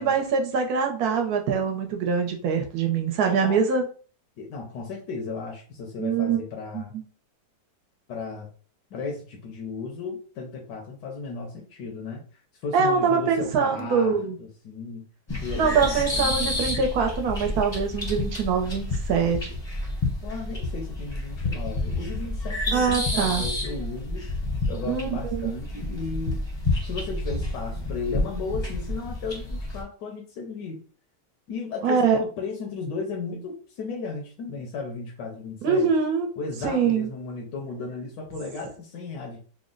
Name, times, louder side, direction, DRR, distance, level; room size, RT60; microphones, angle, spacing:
voice 1, 0.0-3.9 6.0-6.4 6.7-6.8 12.7-14.4 15.5-19.5 22.7-23.4 24.9-25.5 31.8-32.2 35.6-36.3 36.6-37.1, right 6 dB, 70° right, 3 dB, 1.1 m, -24 dB
voice 2, 3.2-3.6 4.4-6.9 8.1-8.5 8.9-12.2 12.6-15.0 15.4-16.7 20.2-24.3 24.7-26.4 26.8-30.8 31.5-35.9 36.4-39.4, left 4 dB, 90° left, 0 dB, 1.4 m, -35 dB
sound 1, 15.3-29.8, left 2 dB, 25° left, 0.6 m, -29 dB
3.6 x 2.1 x 3.8 m, 0.40 s
omnidirectional pair, 1.8 m